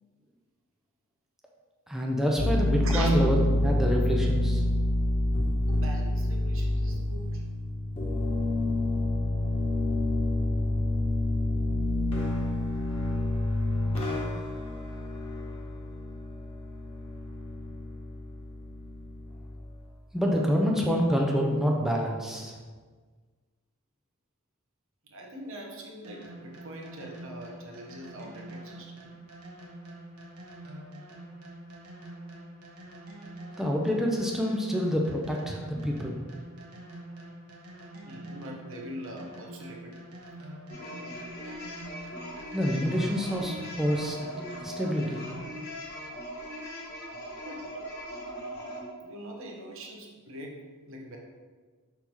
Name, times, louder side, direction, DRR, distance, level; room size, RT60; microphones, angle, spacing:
voice 1, 1.9-4.6 20.1-22.5 33.6-36.2 42.5-44.2 44.6-45.2, equal, ahead, -1 dB, 0.5 m, -27 dB
sound 1, 2.4-19.8, left 1 dB, 25° left, 1.4 m, -28 dB
voice 2, 5.7-7.4 25.1-29.0 38.0-39.9 40.8-41.1 47.4-47.9 49.0-50.6 50.9-51.2, right 1 dB, 60° right, 0 dB, 1.0 m, -42 dB
sound 2, 26.0-45.7, right 1 dB, 85° right, 1.2 m, -46 dB
sound 3, 40.7-48.9, equal, 50° left, 1.4 m, -40 dB
5.7 x 3.5 x 4.6 m, 1.5 s
head